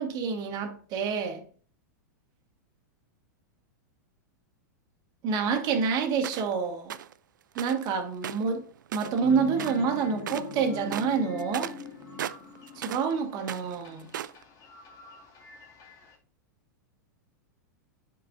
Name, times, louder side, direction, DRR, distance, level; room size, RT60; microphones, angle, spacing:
voice 1, 0.0-1.4 5.2-7.0 7.5-8.6 8.9-11.7 12.7-14.1, right 5 dB, 40° right, 1.6 m, -28 dB
sound 1, 6.2-6.5 6.9-7.1 7.6-7.9 8.2-9.3 9.6-9.9 10.2-10.5 10.9-13.1 13.4-14.4, right 10 dB, 85° right, 0.4 m, -37 dB
sound 2, 9.2-16.1, left 4 dB, 35° left, 2.3 m, -42 dB
10.0 x 4.6 x 2.5 m
hypercardioid pair, 120°, 10 cm